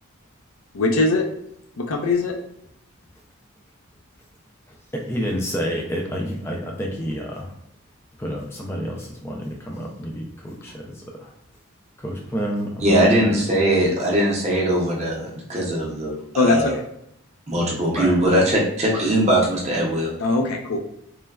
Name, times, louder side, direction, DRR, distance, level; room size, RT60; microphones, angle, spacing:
voice 1, 0.7-1.3 1.8-2.3 16.3-16.7 20.2-20.8, left 3 dB, 75° left, 4 dB, 0.5 m, -20 dB
voice 2, 4.9-7.5 8.2-11.3 12.0-13.3 17.9-18.2, equal, 10° left, -1 dB, 0.3 m, -29 dB
voice 3, 12.8-16.7 17.5-20.1, right 1 dB, 30° right, -3 dB, 0.6 m, -20 dB
3.1 x 2.1 x 2.3 m, 0.76 s
head